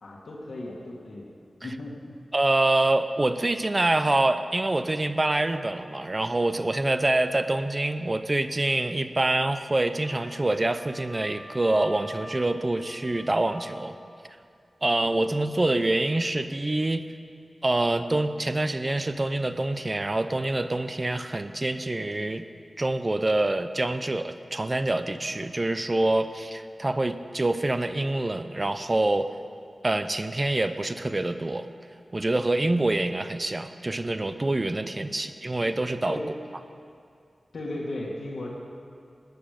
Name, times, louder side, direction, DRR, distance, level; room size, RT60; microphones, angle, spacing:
voice 1, 0.0-1.3 1.6-1.9 35.1-35.2 36.1-36.3 37.5-38.5, left 1 dB, 75° left, -3 dB, 2.0 m, -35 dB
voice 2, 2.3-14.0 14.8-17.1 17.6-22.4 22.8-29.3 29.8-31.7 32.1-36.2, right 2 dB, 30° right, 10 dB, 0.6 m, -26 dB
Wind instrument woodwind instrument, 10.0-14.0, equal, 40° left, 2.2 m, -46 dB
18.5 x 9.4 x 5.1 m, 2.3 s
wide cardioid pair, 75°, 0 cm